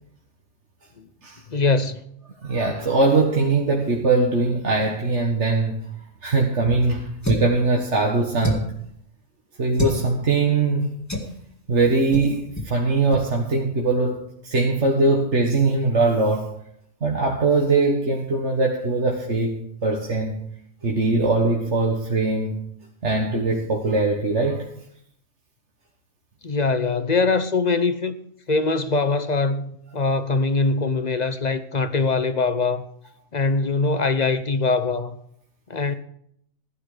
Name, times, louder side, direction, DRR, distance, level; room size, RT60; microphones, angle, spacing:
voice 1, 1.5-2.0 26.4-28.2 28.5-32.8 33.3-35.2 35.7-35.9, left 3 dB, 35° left, 0.8 m, -22 dB
voice 2, 2.4-5.8 6.2-8.7 9.6-10.9 11.7-16.5 17.0-19.6 19.8-20.4 20.8-22.6 23.0-24.7, right 3 dB, 55° right, 1.9 m, -21 dB
sound 1, 7.2-7.6 8.4-8.8 9.7-10.0 11.1-11.4 12.1-12.3 12.6-12.7 13.1-13.3, left 2 dB, 10° left, 2.1 m, -26 dB
16.0 x 12.0 x 5.0 m
omnidirectional pair, 1.4 m